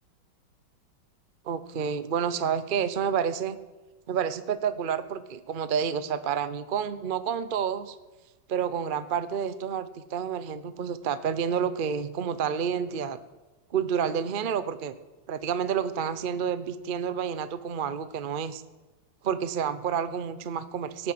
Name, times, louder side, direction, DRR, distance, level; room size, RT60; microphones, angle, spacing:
voice 1, 1.4-3.6 4.1-8.0 8.5-13.2 13.7-14.9 15.3-18.6 19.2-21.1, right 7 dB, 75° right, 13 dB, 0.4 m, -29 dB
18.0 x 9.2 x 7.6 m, 1.2 s
omnidirectional pair, 2.2 m